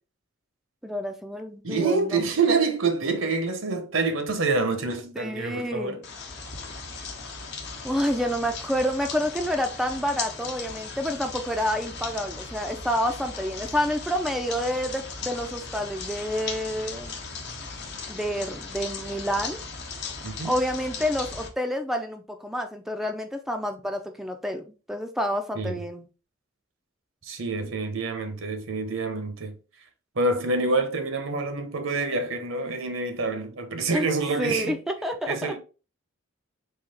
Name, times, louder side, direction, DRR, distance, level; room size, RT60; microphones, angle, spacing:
voice 1, 0.8-2.3 5.2-6.0 7.8-17.1 18.1-19.6 20.4-26.1 33.9-34.1 34.4-35.6, equal, ahead, 0.4 m, -28 dB
voice 2, 1.6-6.0 20.2-20.5 25.5-25.8 27.2-29.5 30.1-34.8 35.3-35.6, right 3 dB, 75° right, 0.9 m, -27 dB
sound 1, 6.0-21.5, left 4 dB, 55° left, 0.9 m, -37 dB
3.9 x 2.9 x 4.2 m
head